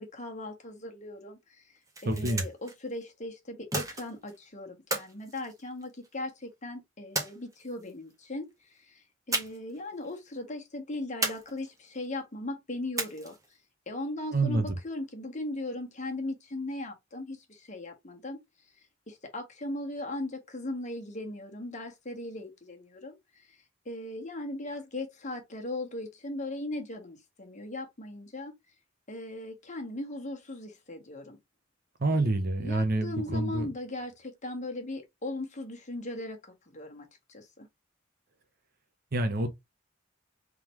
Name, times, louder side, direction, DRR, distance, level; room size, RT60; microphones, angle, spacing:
voice 1, 0.0-13.4 13.9-18.4 19.1-23.6 23.8-28.5 29.1-31.4 32.1-32.3 32.6-37.7, left 2 dB, 40° left, 1.2 m, -38 dB
sound 1, 1.7-2.7 3.7-4.4 4.9-6.2 7.1-7.9 9.3-9.8 10.0-10.2 11.2-11.9 13.0-13.5, right 2 dB, 15° right, 1.2 m, -34 dB
voice 2, 2.1-2.4 14.3-14.8 32.0-33.7 39.1-39.5, right 2 dB, 50° right, 0.8 m, -27 dB
3.7 x 3.3 x 3.0 m
head